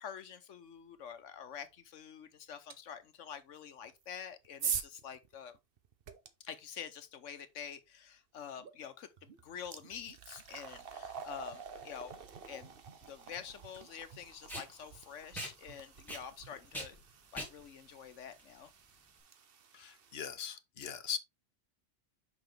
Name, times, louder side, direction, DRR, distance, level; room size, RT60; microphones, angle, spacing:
voice 1, 0.0-5.6 6.4-12.1 12.4-12.8 13.1-17.0 17.3-18.7, left 8 dB, 80° left, 1.2 m, -47 dB
sound 1, 2.7-2.8 3.9-6.3 8.6-8.7 9.2-20.1, right 6 dB, 55° right, 1.0 m, -45 dB
Packing tape duct tape, 11.7-19.2, equal, ahead, 2.7 m, -47 dB
voice 2, 19.7-21.2, left 7 dB, 60° left, 1.0 m, -40 dB
5.9 x 5.7 x 3.3 m
omnidirectional pair, 1.3 m